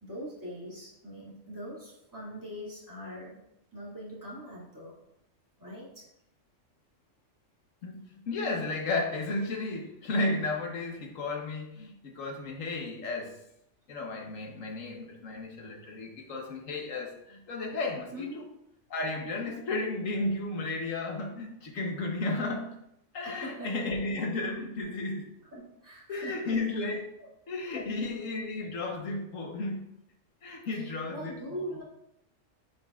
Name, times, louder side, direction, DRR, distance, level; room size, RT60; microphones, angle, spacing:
voice 1, 0.0-3.4 3.7-5.0 5.6-6.1 18.1-18.4 23.2-23.8 24.4-24.6 25.5-26.6 27.7-27.9 30.7-31.8, equal, 15° right, -7 dB, 2.4 m, -42 dB
voice 2, 7.8-13.4 13.9-18.4 18.9-22.7 23.1-25.3 26.1-27.1 27.5-29.8 30.4-31.7, left 2 dB, 85° left, 2 dB, 1.5 m, -33 dB
9.1 x 5.3 x 2.5 m, 0.80 s
omnidirectional pair, 1.3 m